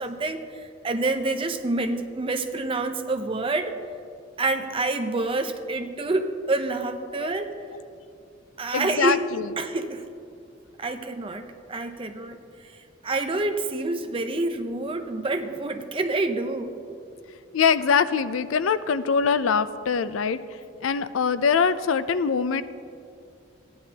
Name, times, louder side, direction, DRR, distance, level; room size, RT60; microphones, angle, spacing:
voice 1, 0.0-3.7 4.4-7.6 8.6-9.2 9.6-10.1 10.8-16.8, right 2 dB, 25° right, 7 dB, 0.6 m, -28 dB
voice 2, 8.7-9.4 17.5-20.4 20.8-22.6, left 6 dB, 85° left, 14 dB, 0.4 m, -23 dB
15.5 x 10.0 x 2.8 m, 2.4 s
head